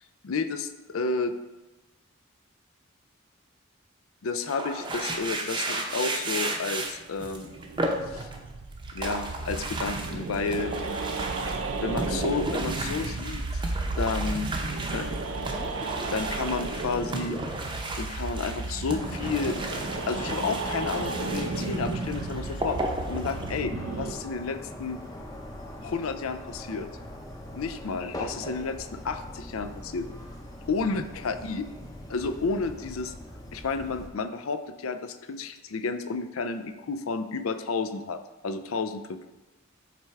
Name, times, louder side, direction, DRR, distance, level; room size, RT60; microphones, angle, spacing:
voice 1, 0.2-1.3 4.2-7.5 8.1-8.3 8.9-10.7 11.8-13.6 14.0-14.5 14.9-15.1 16.1-17.4 18.0-19.6 20.0-22.8 23.1-25.0 25.8-26.9 27.5-30.1 30.7-31.7 32.1-33.1 33.5-39.3, left 4 dB, 90° left, 9 dB, 0.5 m, -31 dB
sound 1, 4.4-8.4 8.7-23.6, right 2 dB, 25° right, 0.6 m, -34 dB
sound 2, 7.1-24.1, right 3 dB, 65° right, 0.5 m, -33 dB
sound 3, 19.0-34.1, left 1 dB, 15° left, 0.6 m, -41 dB
7.3 x 3.4 x 4.7 m, 1.1 s
head